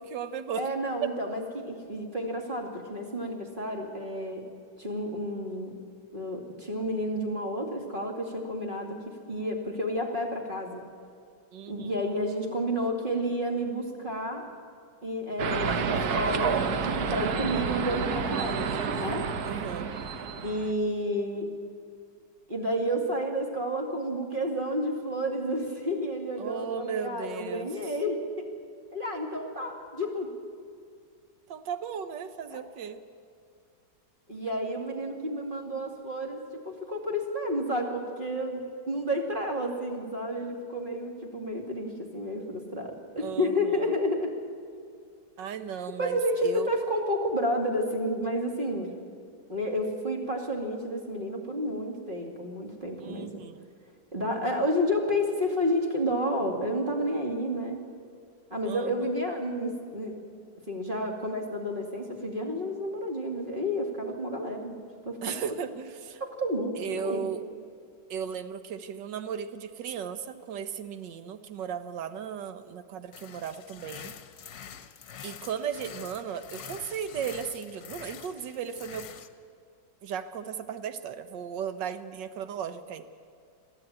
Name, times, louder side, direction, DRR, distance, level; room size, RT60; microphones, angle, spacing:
voice 1, 0.0-0.7 11.5-11.9 19.4-19.9 26.4-27.7 31.5-33.0 43.2-43.9 45.4-46.7 53.0-53.7 58.6-59.1 65.2-66.2 66.8-67.4 68.1-74.2 75.2-79.1 80.0-83.1, right 7 dB, 80° right, 11 dB, 1.6 m, -36 dB
voice 2, 0.6-4.4 4.8-5.7 6.1-10.8 11.7-14.5 15.0-19.3 20.4-21.5 22.5-28.5 28.9-30.3 32.5-32.6 34.3-44.3 46.0-48.9 49.5-53.4 54.1-57.8 58.5-60.2 60.7-64.8 65.0-65.3 66.2-67.3, equal, 30° right, 1 dB, 2.5 m, -31 dB
sound 1, 15.4-20.7, right 5 dB, 65° right, 1.5 m, -29 dB
sound 2, 73.1-79.3, left 8 dB, 65° left, 1.4 m, -46 dB
22.5 x 13.5 x 8.9 m, 2.3 s
omnidirectional pair, 1.9 m